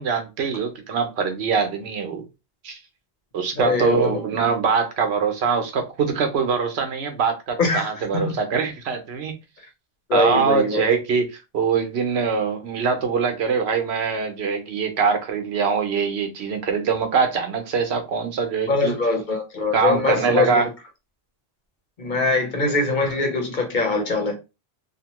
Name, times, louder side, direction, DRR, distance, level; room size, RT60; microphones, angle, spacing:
voice 1, 0.0-2.2 2.6-2.8 3.3-9.3 10.1-11.3 11.5-18.9 19.7-20.7, right 5 dB, 80° right, 1.0 m, -23 dB
voice 2, 3.6-4.2 7.6-7.9 8.1-8.4 10.1-10.9 18.7-20.6 22.0-24.4, left 3 dB, 50° left, 0.8 m, -22 dB
2.8 x 2.1 x 2.9 m
omnidirectional pair, 1.1 m